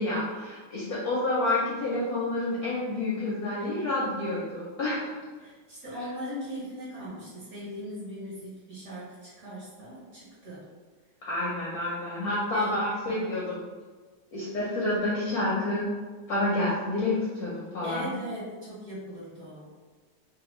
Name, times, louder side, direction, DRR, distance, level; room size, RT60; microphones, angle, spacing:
voice 1, 0.0-5.2 11.2-13.6 14.3-15.8 16.3-18.1, left 2 dB, 70° left, -7 dB, 0.9 m, -29 dB
voice 2, 5.4-10.6 12.3-12.8 13.1-13.5 17.8-19.7, equal, 50° right, -9 dB, 1.1 m, -39 dB
3.3 x 2.2 x 3.0 m, 1.4 s
omnidirectional pair, 2.3 m